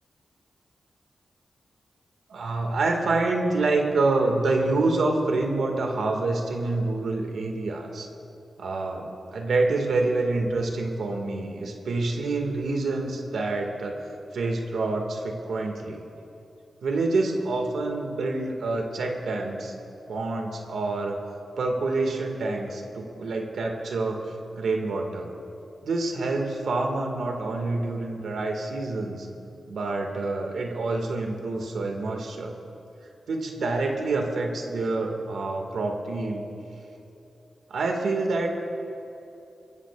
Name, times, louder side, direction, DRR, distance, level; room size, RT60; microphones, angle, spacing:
voice 1, 2.3-8.1 8.6-14.0 14.3-16.0 16.8-19.7 20.1-21.2 21.6-24.2 24.6-25.3 25.8-29.3 29.7-32.5 33.3-36.4 37.7-38.5, right 3 dB, 85° right, 2 dB, 1.9 m, -27 dB
26.0 x 14.5 x 2.5 m, 2.9 s
cardioid pair, 55°, 0 cm